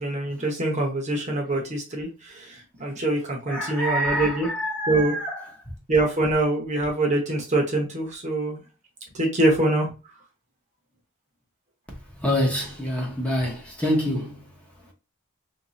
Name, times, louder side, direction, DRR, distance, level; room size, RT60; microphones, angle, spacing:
voice 1, 0.0-4.5 4.9-5.1 5.9-8.6 9.1-9.9, right 2 dB, 35° right, 0.9 m, -24 dB
voice 2, 3.5-5.7 12.2-14.5, equal, 5° left, 0.8 m, -27 dB
3.2 x 2.6 x 3.1 m
head